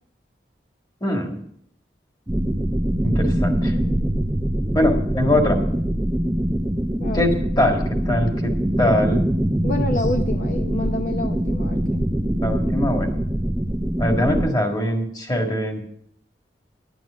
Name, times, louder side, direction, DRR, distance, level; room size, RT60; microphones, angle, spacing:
voice 1, 1.0-1.4 3.0-3.8 4.7-5.6 7.1-8.5 8.8-9.2 12.4-13.2 14.0-15.8, left 1 dB, 20° left, 3 dB, 1.7 m, -22 dB
sound 1, 2.3-14.5, right 1 dB, 10° right, 0.5 m, -23 dB
voice 2, 3.7-4.0 7.0-7.3 9.6-12.0, left 2 dB, 50° left, 4 dB, 0.7 m, -28 dB
10.5 x 9.3 x 6.2 m, 0.69 s
head